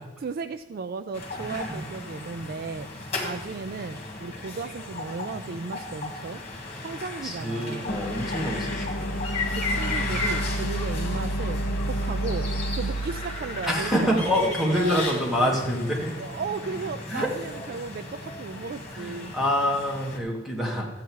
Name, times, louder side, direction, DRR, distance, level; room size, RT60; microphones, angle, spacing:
voice 1, 0.2-2.9 3.2-6.4 6.8-7.9 9.5-15.1 16.2-19.3, right 4 dB, 50° right, 11 dB, 0.4 m, -35 dB
sound 1, 1.1-20.2, left 2 dB, 35° left, 2.1 m, -35 dB
voice 2, 1.5-1.8 7.2-9.2 13.7-16.2 17.1-17.3 18.9-21.0, equal, ahead, -2 dB, 2.0 m, -26 dB
sound 2, 7.9-15.0, right 1 dB, 70° left, 1.0 m, -31 dB
12.5 x 8.5 x 4.6 m, 1.1 s
head